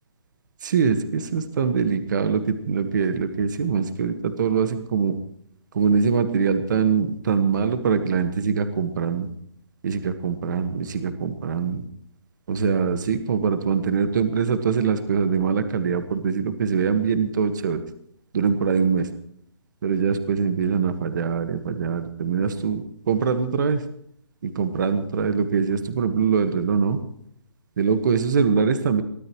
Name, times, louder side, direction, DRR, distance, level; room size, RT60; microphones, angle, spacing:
voice 1, 0.6-5.2 5.7-9.3 9.8-11.8 12.5-17.8 18.3-19.1 19.8-23.8 24.4-27.0 27.8-29.0, right 6 dB, 40° right, 9 dB, 1.6 m, -23 dB
23.5 x 16.5 x 3.1 m, 0.67 s
hypercardioid pair, 170°, 15 cm